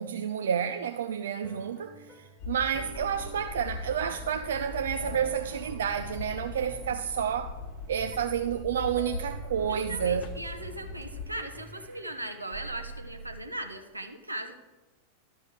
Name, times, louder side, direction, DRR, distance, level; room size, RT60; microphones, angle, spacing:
voice 1, 0.0-7.6 7.9-10.3, right 8 dB, 60° right, 0.4 m, -30 dB
sound 1, 1.4-11.9, left 2 dB, 20° left, 1.3 m, -51 dB
sound 2, 2.4-11.3, left 4 dB, 40° left, 1.1 m, -41 dB
sound 3, 2.9-13.4, right 4 dB, 45° right, 1.4 m, -47 dB
voice 2, 9.7-14.6, right 1 dB, 85° right, 1.0 m, -38 dB
12.5 x 5.2 x 6.5 m
figure-of-eight pair, 90°, 0 cm